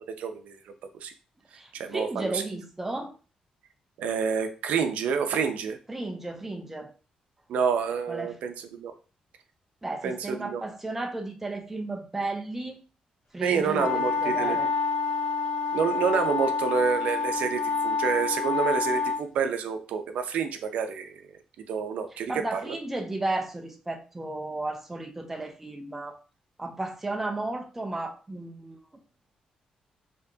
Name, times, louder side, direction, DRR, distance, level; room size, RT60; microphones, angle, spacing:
voice 1, 0.1-0.7 1.0-1.1 1.5-2.4 4.0-5.8 7.5-8.9 10.0-10.6 13.4-14.6 15.7-21.4 21.7-22.8, right 6 dB, 85° right, 0.5 m, -28 dB
voice 2, 1.5-3.1 5.9-6.9 8.1-8.4 9.8-12.8 13.3-14.7 22.3-26.2 26.6-28.8, right 2 dB, 10° right, 0.6 m, -34 dB
sound 1, 13.7-19.2, left 4 dB, 55° left, 0.6 m, -28 dB
4.3 x 2.9 x 2.7 m
cardioid pair, 140°, 2 cm